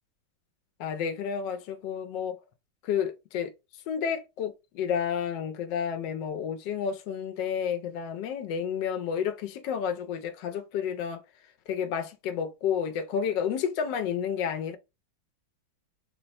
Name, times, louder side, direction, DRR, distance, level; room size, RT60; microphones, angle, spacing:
voice 1, 0.8-2.4 2.8-3.5 3.9-11.2 11.7-14.8, left 7 dB, 85° left, 1.2 m, -30 dB
3.8 x 2.1 x 4.0 m
omnidirectional pair, 1.9 m